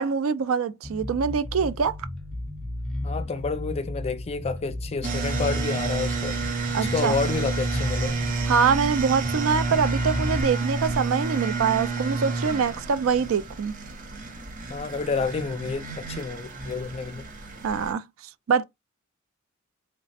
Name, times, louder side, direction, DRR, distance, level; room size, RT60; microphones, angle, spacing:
voice 1, 0.0-1.9 6.7-7.2 8.4-13.7 17.6-18.0 18.5-18.6, right 6 dB, 75° right, 0.4 m, -24 dB
Bass guitar, 0.8-10.4, left 1 dB, 5° left, 0.8 m, -33 dB
voice 2, 3.0-6.4 6.8-8.2 14.7-17.2, left 4 dB, 30° left, 0.4 m, -29 dB
sound 1, 5.0-17.9, right 3 dB, 40° right, 0.6 m, -30 dB
3.2 x 2.0 x 4.1 m
head